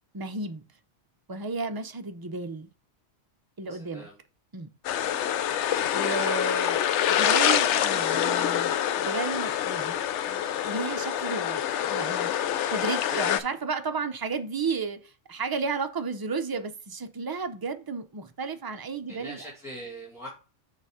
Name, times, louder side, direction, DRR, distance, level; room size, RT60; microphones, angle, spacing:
voice 1, 0.1-0.6 1.3-2.7 3.6-4.1 4.5-4.7 5.9-10.0 10.3-12.3 12.7-19.4, right 4 dB, 30° right, 0.4 m, -33 dB
voice 2, 3.7-4.2 19.1-20.3, right 1 dB, 5° right, 2.0 m, -42 dB
sound 1, 4.8-13.4, left 10 dB, 85° left, 0.9 m, -26 dB
6.7 x 4.0 x 4.9 m
omnidirectional pair, 1.2 m